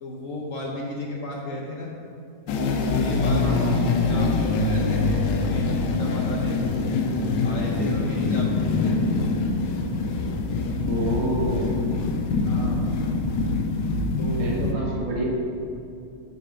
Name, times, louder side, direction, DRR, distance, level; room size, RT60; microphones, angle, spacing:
voice 1, 0.0-1.9 3.0-6.6 7.4-9.1 12.4-12.9 14.2-14.5, left 1 dB, 60° left, -2 dB, 0.9 m, -34 dB
sound 1, 2.5-14.7, left 3 dB, 85° left, 1.3 m, -24 dB
voice 2, 3.4-3.8 10.9-11.9 14.4-15.3, right 2 dB, 80° right, -2 dB, 1.8 m, -28 dB
6.7 x 4.1 x 5.5 m, 2.5 s
omnidirectional pair, 1.9 m